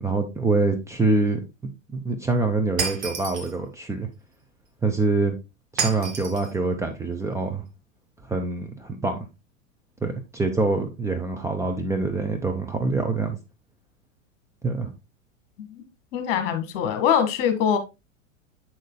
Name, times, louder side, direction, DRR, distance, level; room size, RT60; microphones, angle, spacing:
voice 1, 0.0-4.1 4.8-5.4 5.7-7.6 8.2-9.2 10.0-13.4 14.6-14.9, right 3 dB, 10° right, 0.8 m, -25 dB
Shatter, 2.8-3.5 5.8-6.5, right 5 dB, 50° right, 2.0 m, -29 dB
voice 2, 16.1-17.8, left 8 dB, 45° left, 1.5 m, -23 dB
7.7 x 6.4 x 2.2 m
figure-of-eight pair, 90°, 39 cm